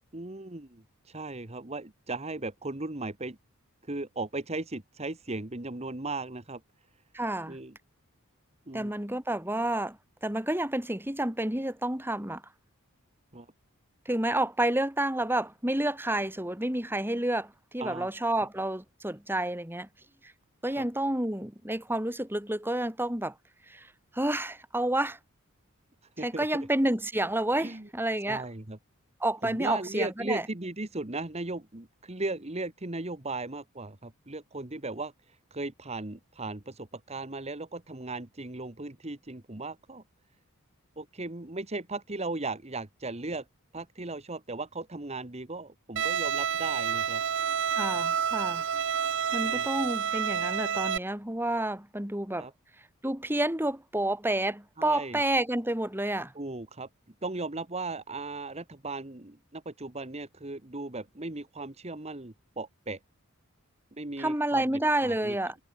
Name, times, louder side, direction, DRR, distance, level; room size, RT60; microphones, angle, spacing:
voice 1, 0.1-3.4 3.8-6.6 7.5-7.7 8.7-8.9 13.3-13.5 17.8-18.1 18.4-18.5 20.8-20.9 26.2-26.5 27.6-27.9 28.3-28.8 29.4-40.0 41.0-43.4 43.7-47.2 49.4-49.6 52.4-52.5 54.8-55.2 56.3-56.9 57.2-63.0 63.9-65.4, right 2 dB, 30° right, 1.5 m, -37 dB
voice 2, 7.1-7.6 8.7-12.4 14.0-19.9 20.6-23.3 23.7-23.9 24.1-25.2 26.2-28.4 29.2-30.4 47.8-48.6 49.3-52.5 53.0-56.3 64.2-65.6, right 1 dB, 10° right, 2.9 m, -29 dB
Bowed string instrument, 46.0-51.0, right 7 dB, 55° right, 0.9 m, -29 dB
head